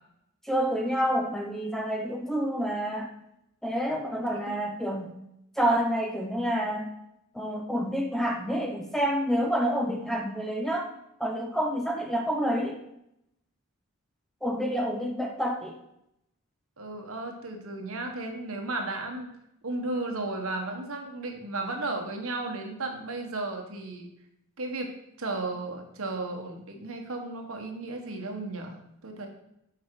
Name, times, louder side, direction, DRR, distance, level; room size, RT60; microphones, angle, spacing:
voice 1, 0.4-3.1 3.6-5.2 5.6-6.9 7.3-10.9 11.2-12.8 14.4-15.7, equal, ahead, 2 dB, 0.6 m, -28 dB
voice 2, 16.8-19.3 19.6-24.1 24.6-24.9 25.2-29.3, right 2 dB, 75° right, 3 dB, 1.3 m, -34 dB
7.3 x 4.8 x 4.7 m, 0.81 s
head